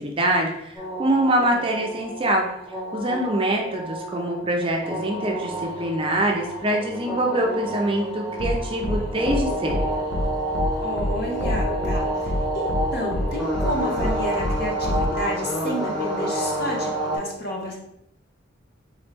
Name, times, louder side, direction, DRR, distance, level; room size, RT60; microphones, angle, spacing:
voice 1, 0.0-2.5 2.9-9.8, right 1 dB, 25° right, 1 dB, 0.5 m, -24 dB
sound 1, 0.7-17.2, right 1 dB, 5° left, 1.4 m, -29 dB
sound 2, 8.4-8.5 8.8-9.0 9.2-9.4 9.7-9.8 10.1-10.2 10.5-10.7 11.0-11.1 11.4-12.0 12.2-12.4 12.7-12.8 13.1-13.2 13.5-13.7 14.0-14.1 14.4-14.5 14.8-15.1, left 1 dB, 75° left, 0.6 m, -26 dB
voice 2, 10.8-17.7, equal, 55° left, -1 dB, 1.0 m, -30 dB
3.8 x 3.0 x 3.3 m, 0.77 s
head